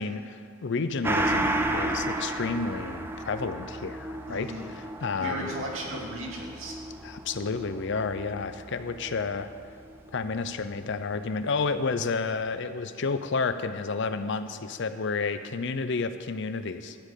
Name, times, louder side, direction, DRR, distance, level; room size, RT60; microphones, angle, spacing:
voice 1, 0.0-5.5 7.0-9.5 10.1-17.0, left 4 dB, 60° left, 10 dB, 0.6 m, -31 dB
Gong, 1.0-10.0 10.3-10.4, right 1 dB, 10° right, 0.6 m, -33 dB
voice 2, 4.3-4.7 5.2-6.8, right 1 dB, 80° right, -2 dB, 2.3 m, -35 dB
13.5 x 5.3 x 8.3 m, 2.3 s
head